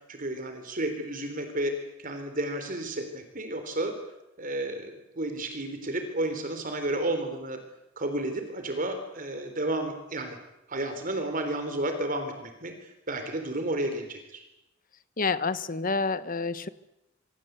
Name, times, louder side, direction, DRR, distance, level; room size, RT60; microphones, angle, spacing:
voice 1, 0.1-1.7 2.0-4.0 4.4-7.6 8.0-10.4 10.7-12.7 13.1-14.4, right 1 dB, 45° right, 7 dB, 3.8 m, -32 dB
voice 2, 15.2-16.7, left 4 dB, 45° left, 14 dB, 1.2 m, -28 dB
26.0 x 25.5 x 8.2 m, 0.91 s
head